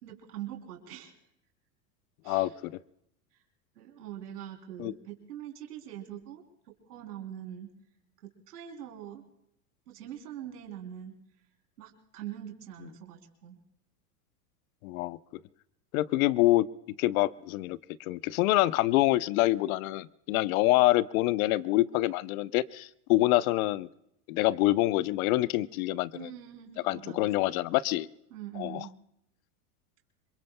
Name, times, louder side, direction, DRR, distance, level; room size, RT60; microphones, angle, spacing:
voice 1, 0.0-1.1 2.2-2.6 3.3-3.4 3.8-7.7 8.2-9.2 9.9-11.2 11.8-13.6 26.1-27.5 28.3-28.9, right 11 dB, 85° right, 2 dB, 3.6 m, -43 dB
voice 2, 2.3-2.7 4.8-4.9 14.8-15.2 15.9-16.7 17.0-23.9 24.3-26.3 26.8-28.1 28.6-28.9, left 17 dB, 65° left, 17 dB, 0.8 m, -26 dB
26.5 x 23.0 x 2.3 m, 0.79 s
hypercardioid pair, 110°, 46 cm